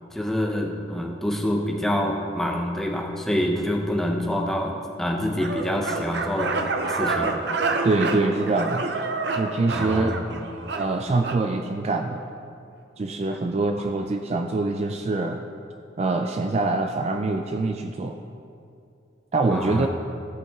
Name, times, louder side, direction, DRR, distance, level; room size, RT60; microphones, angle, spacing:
voice 1, 0.1-7.3 9.7-10.4 19.5-19.9, equal, ahead, 0 dB, 0.7 m, -26 dB
sound 1, 5.4-11.4, right 3 dB, 65° right, 0.6 m, -28 dB
voice 2, 7.8-8.9 9.4-10.1 10.7-12.2 13.0-15.5 16.0-18.2 19.3-19.9, right 3 dB, 35° right, 5 dB, 0.3 m, -24 dB
14.5 x 5.5 x 3.6 m, 2.5 s
head